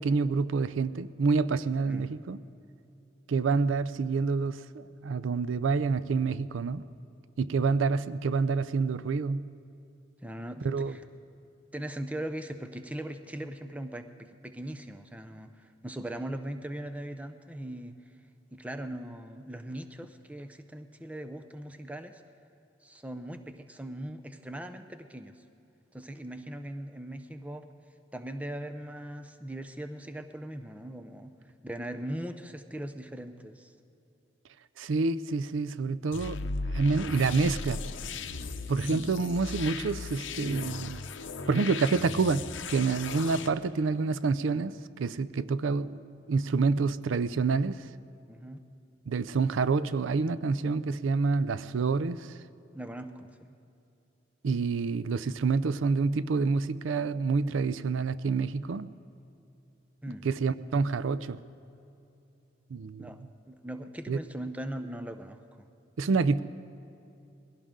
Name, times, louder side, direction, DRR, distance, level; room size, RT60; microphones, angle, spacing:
voice 1, 0.0-2.4 3.3-6.8 7.4-9.5 10.6-10.9 34.8-36.4 36.7-37.8 38.7-41.0 41.5-46.0 46.3-47.9 49.1-52.4 54.4-58.9 60.2-61.4 62.7-63.1 64.1-64.2 66.0-66.4, right 4 dB, 85° right, 16 dB, 0.4 m, -28 dB
voice 2, 10.2-11.0 11.7-18.0 18.5-22.2 22.8-25.4 25.9-27.7 28.1-31.3 31.6-33.7 38.8-39.1 48.3-48.6 52.7-53.5 60.0-60.3 63.0-63.2 63.5-65.7, right 1 dB, 5° right, 7 dB, 0.6 m, -40 dB
sound 1, 36.1-43.5, left 4 dB, 75° left, 0.8 m, -37 dB
21.5 x 16.5 x 3.7 m, 2.7 s
head